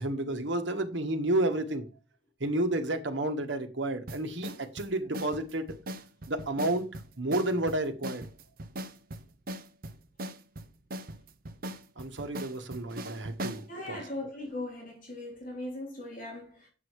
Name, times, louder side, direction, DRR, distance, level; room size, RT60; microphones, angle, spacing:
voice 1, 0.0-1.8 2.4-5.7 6.3-6.8 7.2-8.3 12.0-13.6 13.9-14.0, right 1 dB, 70° right, 1.5 m, -31 dB
sound 1, 4.1-13.7, right 1 dB, 50° right, 0.8 m, -40 dB
voice 2, 13.7-16.7, left 1 dB, 45° left, 3.1 m, -39 dB
8.5 x 6.3 x 4.7 m
head